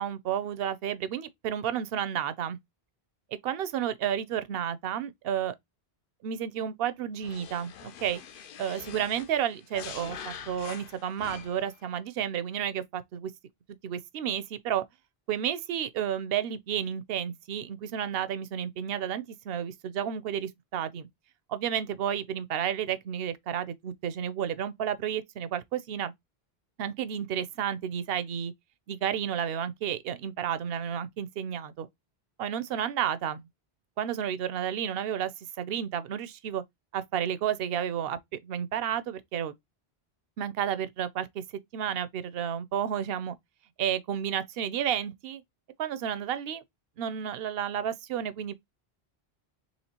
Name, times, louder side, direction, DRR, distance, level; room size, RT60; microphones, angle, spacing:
voice 1, 0.0-2.6 3.4-5.6 6.2-8.2 8.6-13.3 13.8-14.8 15.3-21.1 21.5-26.1 26.8-28.5 28.9-31.9 32.4-33.5 34.0-35.3 35.6-36.6 36.9-39.5 40.4-41.4 41.7-43.4 43.8-45.4 45.8-46.6 47.0-48.5, right 9 dB, 70° right, 0.8 m, -31 dB
sound 1, 7.2-11.8, left 8 dB, 65° left, 0.7 m, -44 dB
4.2 x 3.0 x 2.8 m
omnidirectional pair, 1.0 m